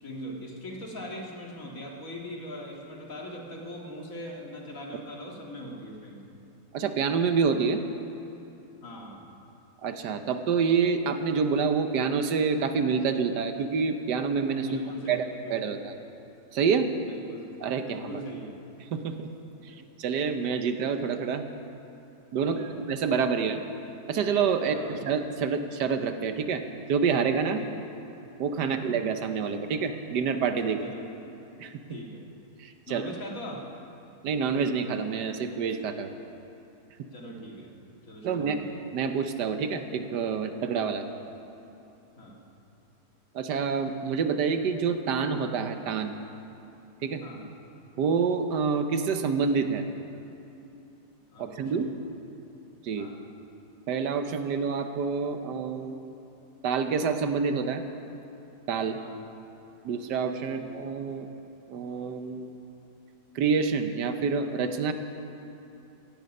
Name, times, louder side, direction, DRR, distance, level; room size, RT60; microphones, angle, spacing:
voice 1, 0.0-6.3 8.8-9.2 14.7-15.8 17.1-17.5 17.8-18.5 19.7-19.8 22.4-22.8 24.6-25.0 27.6-27.8 28.6-28.9 30.8-31.1 31.9-32.2 32.9-33.7 37.1-37.7 38.1-38.8 42.2-42.4 47.2-47.5 51.3-51.9 53.0-53.2 59.0-59.2 60.5-60.7, equal, 55° left, -1 dB, 2.5 m, -41 dB
voice 2, 6.7-7.8 9.8-14.7 15.1-15.2 15.5-15.9 16.5-16.9 17.6-18.2 18.9-19.3 19.6-21.4 22.3-23.6 24.1-26.6 26.9-27.6 28.4-30.8 31.6-31.8 32.6-33.0 34.2-36.1 38.2-38.7 38.9-41.0 43.3-46.2 47.0-47.2 48.0-49.9 51.4-51.9 52.8-53.1 53.9-56.1 56.6-57.8 58.7-59.0 59.8-61.3 61.7-62.6 63.3-64.9, right 5 dB, 80° right, 8 dB, 1.5 m, -27 dB
16.5 x 16.0 x 5.4 m, 2.8 s
omnidirectional pair, 1.8 m